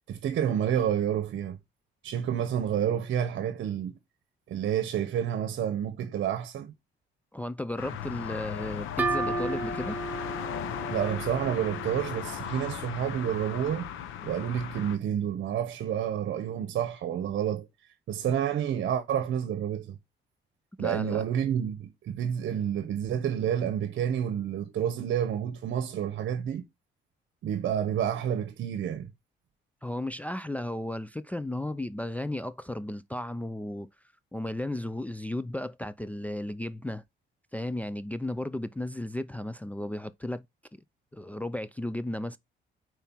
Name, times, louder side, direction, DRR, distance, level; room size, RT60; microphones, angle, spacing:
voice 1, 0.1-1.6 2.0-4.0 4.5-6.7 10.9-13.9 14.2-17.7 18.1-20.0 20.8-26.6 27.4-29.1, right 9 dB, 70° right, 0.9 m, -29 dB
voice 2, 7.3-10.0 20.8-21.2 29.8-33.9 34.3-37.0 37.5-40.4 41.1-42.4, left 1 dB, 5° left, 0.4 m, -34 dB
sound 1, 7.8-15.0, left 10 dB, 90° left, 0.8 m, -37 dB
sound 2, 9.0-12.5, right 3 dB, 10° right, 1.4 m, -34 dB
5.3 x 4.6 x 4.5 m
cardioid pair, 90°, 20 cm